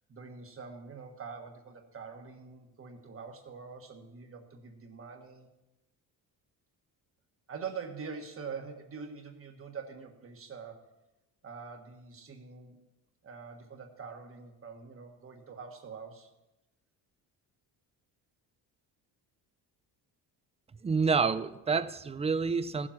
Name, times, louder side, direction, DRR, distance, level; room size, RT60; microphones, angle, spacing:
voice 1, 0.1-5.5 7.5-10.9 11.4-12.8 13.2-16.3, right 5 dB, 35° right, 4 dB, 1.5 m, -44 dB
voice 2, 20.8-22.9, right 5 dB, 15° right, 13 dB, 0.4 m, -28 dB
15.5 x 7.4 x 5.8 m, 0.95 s
cardioid pair, 150°, 39 cm